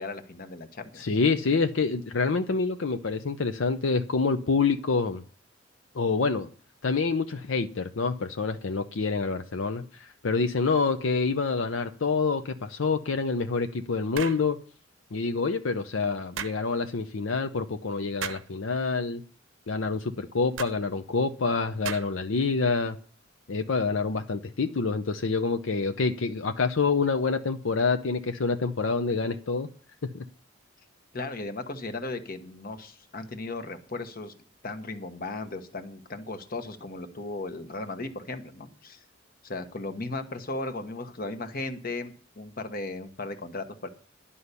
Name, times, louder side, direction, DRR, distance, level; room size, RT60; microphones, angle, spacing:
voice 1, 0.0-1.0 31.1-34.3 34.6-39.0 39.4-43.9, left 2 dB, 45° left, 8 dB, 1.1 m, -36 dB
voice 2, 1.0-5.2 5.9-6.5 6.8-14.6 15.1-19.2 19.7-23.0 23.5-29.7 30.0-30.2, left 4 dB, 75° left, 8 dB, 0.7 m, -27 dB
sound 1, 14.1-14.5 16.4-16.6 18.2-18.5 20.6-20.8 21.8-22.2, right 7 dB, 75° right, 0.7 m, -35 dB
11.5 x 5.5 x 8.2 m, 0.42 s
head